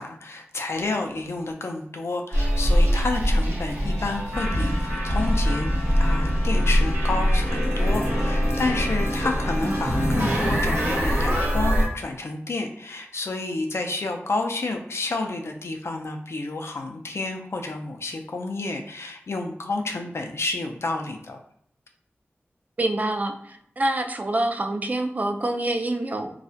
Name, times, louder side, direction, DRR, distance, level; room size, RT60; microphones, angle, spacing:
voice 1, 0.0-5.7 6.0-21.4, left 2 dB, 70° left, 4 dB, 0.4 m, -30 dB
sound 1, 2.3-11.9, equal, 80° right, 0.9 m, -23 dB
voice 2, 22.8-26.3, right 1 dB, 35° right, 5 dB, 0.3 m, -26 dB
2.3 x 2.0 x 2.6 m, 0.68 s
wide cardioid pair, 70°, 5 cm